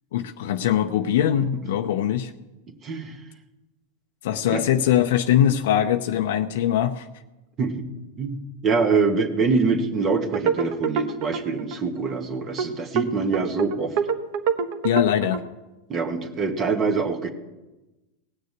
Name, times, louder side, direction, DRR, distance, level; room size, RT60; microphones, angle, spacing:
voice 1, 0.1-2.3 4.2-7.1 14.8-15.4, left 10 dB, 75° left, 6 dB, 0.6 m, -22 dB
voice 2, 2.8-3.2 4.5-4.6 7.6-7.9 8.2-8.4 8.6-14.0 15.9-17.3, right 4 dB, 30° right, 6 dB, 1.7 m, -24 dB
sound 1, 10.1-11.8 12.1-12.2 12.6-12.7 13.0-15.4, right 6 dB, 60° right, 1.1 m, -26 dB
18.0 x 6.7 x 8.1 m, 1.1 s
hypercardioid pair, 120°, 0 cm